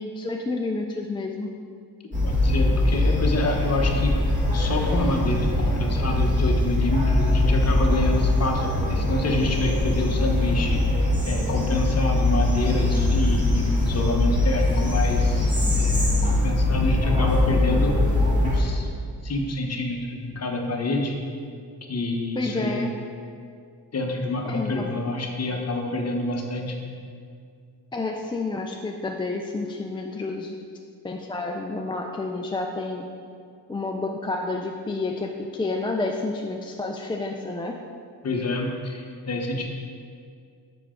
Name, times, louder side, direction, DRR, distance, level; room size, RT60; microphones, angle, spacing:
voice 1, 0.0-1.5 22.4-22.9 24.5-24.9 27.9-30.6 31.0-33.0 33.7-37.8, left 3 dB, 15° left, 1 dB, 0.3 m, -30 dB
sound 1, 2.1-18.6, left 1 dB, 20° right, 1.8 m, -22 dB
voice 2, 2.2-18.0 18.4-18.9 19.2-21.2 21.9-22.8 23.9-26.9 38.2-39.7, left 2 dB, 40° left, 2 dB, 0.9 m, -27 dB
7.0 x 5.8 x 3.7 m, 2.3 s
cardioid pair, 100°, 41 cm